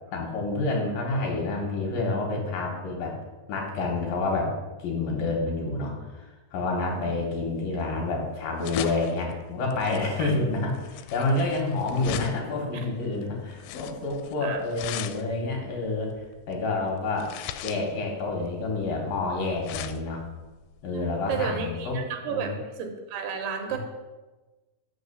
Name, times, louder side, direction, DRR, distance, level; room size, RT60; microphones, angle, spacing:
voice 1, 0.1-3.1 3.5-4.5 4.8-16.1 16.5-17.3 17.6-20.2 20.8-22.0 22.3-22.5 23.7-23.8, left 3 dB, 65° left, -1 dB, 2.6 m, -28 dB
voice 2, 6.9-7.3 10.2-10.3 12.7-12.9 14.4-14.6 20.9-22.5 22.8-23.8, right 6 dB, 75° right, 4 dB, 2.7 m, -32 dB
sound 1, 7.1-21.8, left 11 dB, 85° left, 2.7 m, -40 dB
6.4 x 6.3 x 6.7 m, 1.2 s
omnidirectional pair, 4.9 m